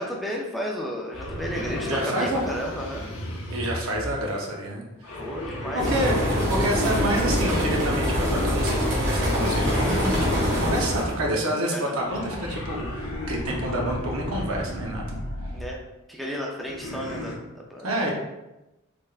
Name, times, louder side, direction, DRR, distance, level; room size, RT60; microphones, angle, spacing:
voice 1, 0.0-3.1 5.2-5.9 11.7-12.0 15.5-15.8 16.1-17.9, equal, ahead, -2 dB, 0.4 m, -33 dB
sound 1, 1.1-4.4 5.0-8.7 9.2-11.4 12.0-15.7 16.6-17.4, left 1 dB, 85° left, 0.7 m, -34 dB
voice 2, 1.8-2.4 3.5-5.1 5.7-15.1 17.8-18.1, right 1 dB, 80° right, -1 dB, 0.8 m, -28 dB
sound 2, 5.8-11.2, equal, 60° right, 1.2 m, -24 dB
3.5 x 3.2 x 2.3 m, 0.97 s
head